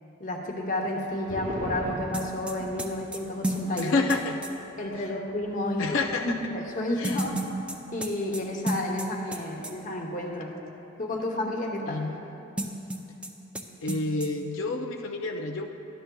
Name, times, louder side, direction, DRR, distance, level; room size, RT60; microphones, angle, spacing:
voice 1, 0.2-3.9 4.8-6.0 6.2-7.4 7.9-10.6 11.0-12.0, left 1 dB, 40° left, 1 dB, 0.9 m, -31 dB
sound 1, 0.7-7.6 7.9-8.0 8.4-8.9, right 1 dB, 40° right, 0.8 m, -42 dB
sound 2, 2.1-4.5 7.0-9.4 9.6-9.7 12.6-13.3 13.5-13.6 13.9-14.3, right 1 dB, 5° right, 0.4 m, -31 dB
voice 2, 3.8-4.4 5.0-5.1 5.8-6.4 7.0-7.3 11.9-12.2 13.8-15.7, left 3 dB, 90° left, 2 dB, 0.5 m, -29 dB
12.5 x 11.0 x 2.3 m, 2.9 s
head